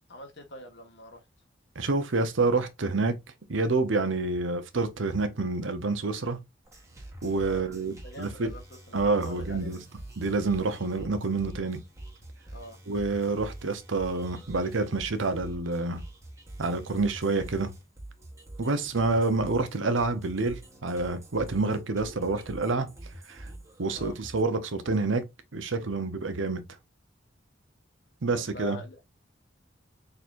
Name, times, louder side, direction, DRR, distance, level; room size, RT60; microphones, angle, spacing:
voice 1, 0.1-1.2 7.4-7.7 8.0-9.8 12.5-12.8 23.9-24.1 28.4-29.0, left 2 dB, 60° left, 1.5 m, -44 dB
voice 2, 1.8-3.2 3.5-6.4 7.2-8.5 8.9-9.8 10.2-11.8 12.9-16.0 16.6-17.7 18.6-22.9 23.3-23.5 23.8-25.3 25.5-26.6 28.2-28.8, right 3 dB, 80° right, 0.8 m, -28 dB
sound 1, 6.6-24.4, right 1 dB, 15° right, 1.2 m, -45 dB
4.5 x 3.9 x 2.5 m
head